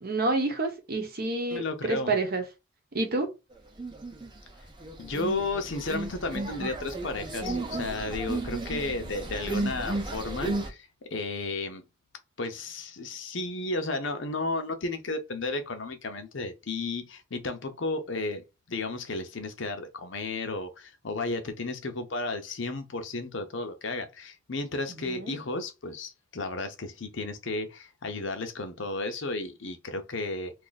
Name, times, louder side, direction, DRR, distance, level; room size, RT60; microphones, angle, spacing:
voice 1, 0.0-2.4 2.9-3.3 25.0-25.4, right 2 dB, 50° right, 0.9 m, -28 dB
voice 2, 1.5-2.2 5.0-11.8 12.4-18.4 18.7-30.5, left 2 dB, 65° left, 0.7 m, -33 dB
sound 1, 3.8-4.4 4.7-10.7, right 2 dB, 25° right, 0.7 m, -33 dB
2.6 x 2.5 x 3.9 m
head